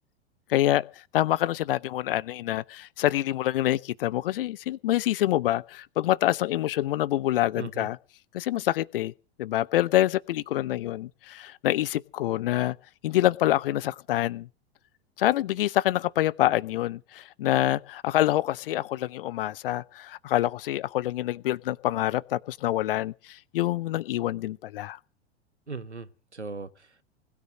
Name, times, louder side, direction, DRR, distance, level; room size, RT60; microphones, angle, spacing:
voice 1, 0.5-0.9 1.1-8.0 8.3-9.1 9.4-12.8 13.0-14.5 15.2-25.0, left 14 dB, 55° left, 0.7 m, -26 dB
voice 2, 7.6-7.9 25.7-27.0, right 4 dB, 90° right, 1.1 m, -39 dB
20.5 x 9.5 x 6.2 m
figure-of-eight pair, 90°, 33 cm